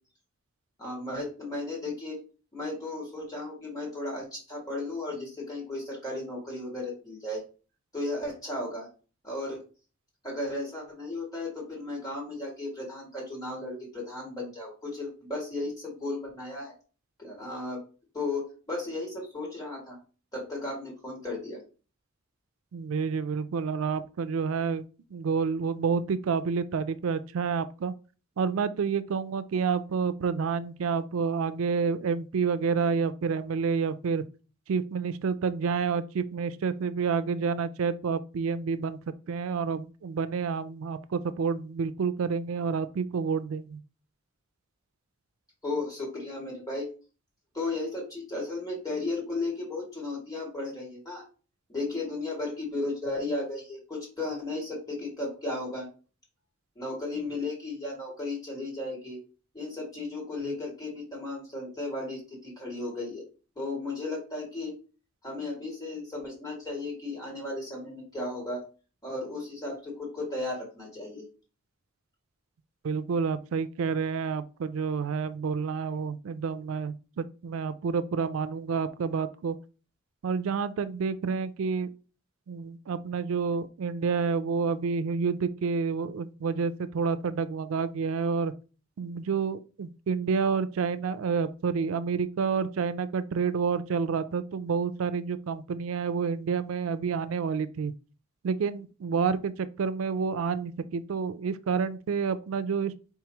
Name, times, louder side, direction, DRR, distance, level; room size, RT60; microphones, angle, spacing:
voice 1, 0.8-2.2 2.5-7.4 7.9-8.9 9.2-9.6 10.2-16.7 17.2-17.8 18.1-20.0 20.3-21.6 45.6-46.9 47.5-51.2 51.7-55.9 56.8-59.2 59.5-63.2 63.6-64.7 65.2-68.6 69.0-71.2, left 2 dB, 20° left, 2.3 m, -35 dB
voice 2, 22.7-24.9 25.1-27.9 28.4-34.2 34.7-39.0 39.3-43.8 72.8-79.6 80.2-81.9 82.5-88.5 89.0-97.9 98.4-102.9, right 5 dB, 90° right, 0.4 m, -29 dB
4.6 x 3.9 x 2.9 m
head